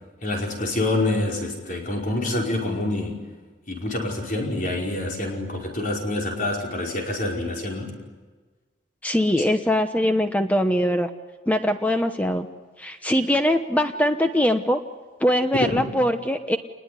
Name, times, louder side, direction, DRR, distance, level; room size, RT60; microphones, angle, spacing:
voice 1, 0.2-3.1 3.7-7.9 15.6-15.9, left 2 dB, 45° left, -1 dB, 5.2 m, -26 dB
voice 2, 9.0-11.1 11.5-12.5 12.8-14.8 15.2-16.6, left 1 dB, 10° left, 7 dB, 1.0 m, -22 dB
28.5 x 21.0 x 9.7 m, 1.3 s
head